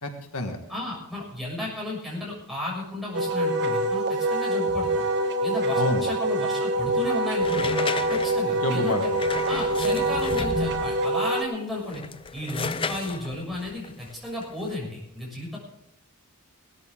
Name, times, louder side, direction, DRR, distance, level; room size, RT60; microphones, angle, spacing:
voice 1, 0.0-0.6 5.7-6.0 8.6-9.2, left 1 dB, 80° left, 4 dB, 1.8 m, -28 dB
voice 2, 0.7-5.0 5.4-7.7 8.1-9.0 9.5-12.0 12.3-15.6, left 1 dB, ahead, -4 dB, 6.7 m, -33 dB
Wind instrument woodwind instrument, 3.1-11.4, right 1 dB, 50° right, 1.5 m, -25 dB
sound 1, 7.4-11.1 11.8-14.7, left 3 dB, 25° left, 0.5 m, -33 dB
19.0 x 13.5 x 3.8 m, 0.79 s
head